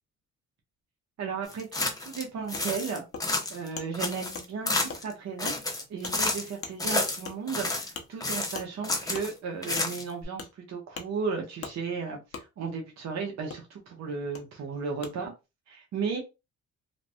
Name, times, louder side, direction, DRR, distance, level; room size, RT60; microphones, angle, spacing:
voice 1, 1.2-3.0 3.5-5.5 5.9-15.3 15.7-16.2, right 5 dB, 60° right, 0.8 m, -35 dB
sound 1, 1.5-2.2 2.5-3.7 3.9-5.1 5.4-6.5 6.8-7.9 8.2-9.3 9.6-10.2, left 2 dB, 10° left, 0.6 m, -30 dB
Wood, 1.8-1.9 2.5-2.6 3.1-3.2 3.8-3.9 4.3-4.5 4.9-5.0 5.5-5.6 6.0-6.2 6.6-6.8 7.3-7.4 7.9-8.1 8.5-8.7 9.1-9.3 9.8-9.9 10.4-10.5 10.9-11.1 11.6-11.7 12.3-12.4 13.5-13.6 14.3-14.4 15.0-15.1, left 5 dB, 50° left, 0.7 m, -39 dB
3.1 x 2.0 x 2.7 m
cardioid pair, 90°, 30 cm